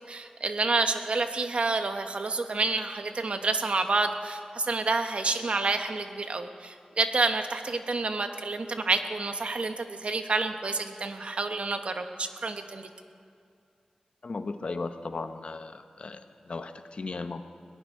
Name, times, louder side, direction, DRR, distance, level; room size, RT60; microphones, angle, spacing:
voice 1, 0.0-12.9, right 3 dB, 55° right, 7 dB, 1.0 m, -29 dB
voice 2, 14.2-17.4, left 3 dB, 55° left, 9 dB, 0.8 m, -36 dB
21.0 x 18.0 x 3.7 m, 2.4 s
wide cardioid pair, 115°, 2 cm